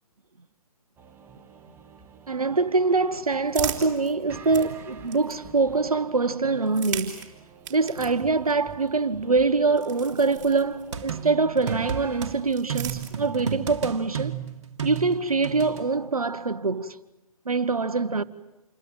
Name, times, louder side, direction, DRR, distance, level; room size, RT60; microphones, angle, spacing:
sound 1, 1.0-12.3, right 6 dB, 10° right, 1.4 m, -49 dB
voice 1, 2.3-7.2 7.7-14.4 14.8-17.0 17.4-18.2, right 4 dB, 75° right, 1.3 m, -24 dB
sound 2, 2.7-5.7 6.6-11.2 12.1-13.6, right 9 dB, 30° right, 3.9 m, -39 dB
sound 3, 10.9-12.3 12.7-15.8, right 8 dB, 50° right, 2.4 m, -32 dB
28.0 x 22.5 x 8.9 m
figure-of-eight pair, 130°, 19 cm